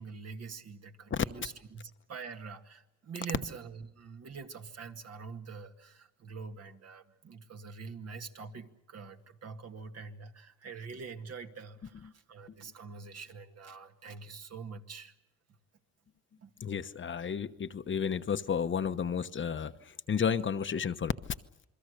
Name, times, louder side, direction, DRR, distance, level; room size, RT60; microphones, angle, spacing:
voice 1, 0.0-15.1 16.4-16.5, right 5 dB, 55° right, 5 dB, 2.1 m, -45 dB
voice 2, 16.6-19.7 20.1-21.1, left 7 dB, 40° left, 10 dB, 1.0 m, -31 dB
28.0 x 22.5 x 6.6 m, 0.89 s
cardioid pair, 90°, 30 cm